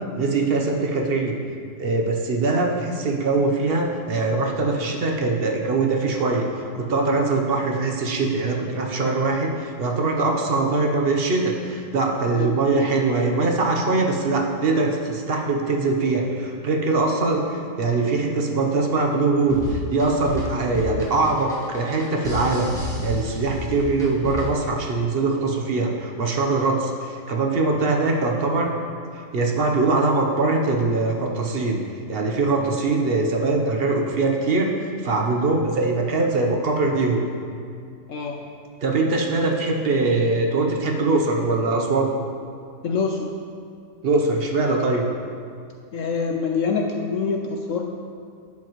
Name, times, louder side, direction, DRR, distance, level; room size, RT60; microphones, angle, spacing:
voice 1, 0.1-1.3 1.8-22.7 23.0-28.7 29.3-31.8 32.1-37.2 38.8-42.1 44.0-45.0, right 3 dB, 45° right, 1 dB, 0.8 m, -22 dB
sound 1, 19.4-24.7, left 2 dB, ahead, 1.9 m, -31 dB
voice 2, 38.1-38.5 42.8-43.3 45.9-47.8, left 5 dB, 70° left, 2 dB, 0.8 m, -25 dB
10.5 x 7.5 x 3.0 m, 2.3 s
omnidirectional pair, 1.8 m